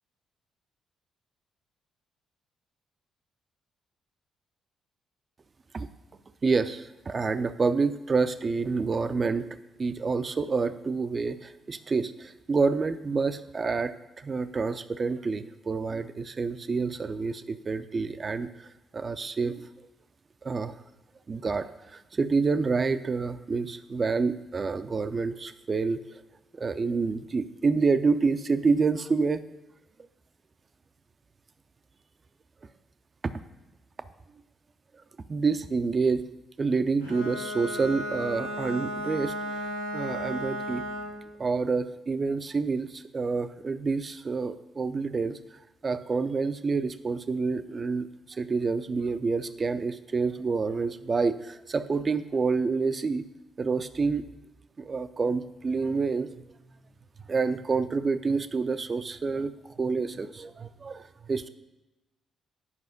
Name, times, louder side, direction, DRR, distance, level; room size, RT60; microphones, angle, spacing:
voice 1, 6.4-9.5 9.8-19.7 20.4-20.7 21.3-26.2 26.5-29.4 33.2-33.3 35.3-36.2 36.6-39.3 39.9-40.9 41.4-45.4 45.8-53.2 53.6-54.3 54.8-56.5 57.3-61.5, right 4 dB, 35° right, 12 dB, 0.5 m, -28 dB
Bowed string instrument, 37.0-41.3, equal, 90° left, 0.9 m, -34 dB
9.8 x 5.5 x 5.2 m, 1.0 s
figure-of-eight pair, 40°, 0 cm